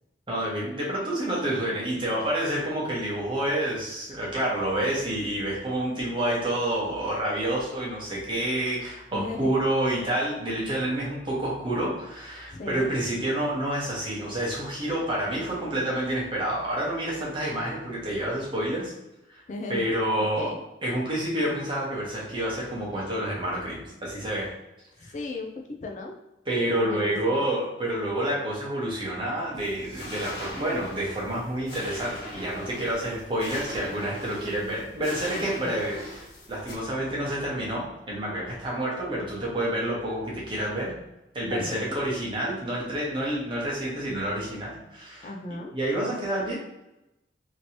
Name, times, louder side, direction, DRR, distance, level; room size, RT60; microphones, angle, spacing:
voice 1, 0.3-18.9 19.3-19.4 19.7-20.5 20.8-24.5 25.0-25.1 26.5-36.2 36.5-40.9 41.3-45.3 45.7-46.6, right 1 dB, 25° right, -4 dB, 1.0 m, -28 dB
voice 2, 9.1-9.6 12.5-13.0 19.5-20.6 25.0-25.5 25.8-26.2 26.8-27.5 35.6-35.8 41.5-42.0 45.2-45.7, left 2 dB, 40° left, 2 dB, 0.3 m, -36 dB
sound 1, 29.5-36.8, left 1 dB, 65° left, 1.1 m, -40 dB
3.0 x 2.8 x 2.8 m, 0.92 s
head